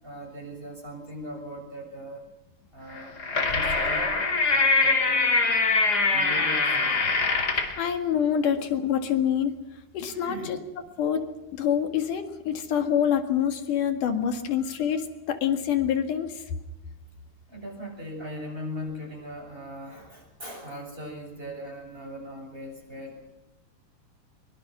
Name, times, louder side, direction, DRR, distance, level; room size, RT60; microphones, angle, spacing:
voice 1, 0.0-2.2 2.7-4.1 4.5-5.4 6.1-7.0 10.2-10.6 14.6-14.9 17.5-23.2, equal, 15° right, 1 dB, 7.1 m, -39 dB
sound 1, 2.9-7.8, left 3 dB, 30° left, 3.1 m, -23 dB
voice 2, 7.8-9.5 9.9-10.6 11.0-11.2 11.6-16.3, left 9 dB, 80° left, 6 dB, 3.4 m, -26 dB
23.0 x 23.0 x 6.1 m, 0.97 s
omnidirectional pair, 3.6 m